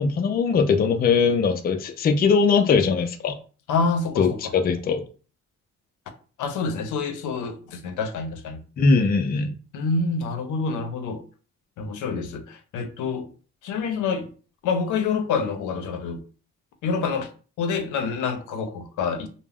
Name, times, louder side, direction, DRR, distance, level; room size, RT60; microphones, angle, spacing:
voice 1, 0.0-3.4 4.2-5.0 8.8-9.5, left 5 dB, 30° left, 0.4 m, -20 dB
voice 2, 3.7-4.5 6.4-8.6 9.7-11.2 11.8-13.3 13.6-14.3 14.6-16.2 16.8-17.3 17.6-19.3, left 4 dB, 80° left, 0.6 m, -27 dB
2.2 x 2.1 x 3.4 m
cardioid pair, 90°, 30 cm